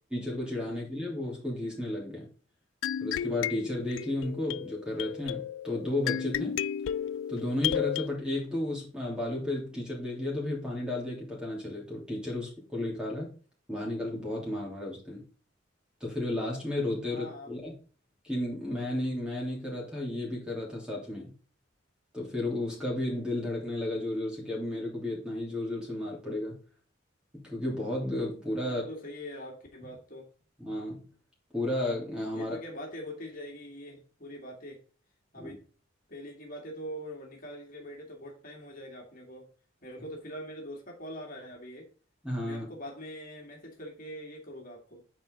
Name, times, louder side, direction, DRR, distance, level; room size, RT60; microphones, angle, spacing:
voice 1, 0.1-2.3 3.0-6.6 7.3-13.3 13.7-15.2 16.0-17.7 18.2-21.3 22.1-26.6 27.3-28.8 30.6-31.0 31.5-32.6 35.4-35.5 42.2-42.7, left 1 dB, 5° right, -3 dB, 3.1 m, -33 dB
sound 1, 2.8-8.1, left 10 dB, 75° left, 0.3 m, -33 dB
voice 2, 17.1-17.6 28.6-30.3 32.3-34.8 35.3-35.6 36.1-39.5 39.8-41.9 42.4-45.0, equal, 45° left, 0 dB, 2.2 m, -43 dB
9.4 x 4.5 x 3.8 m, 0.39 s
head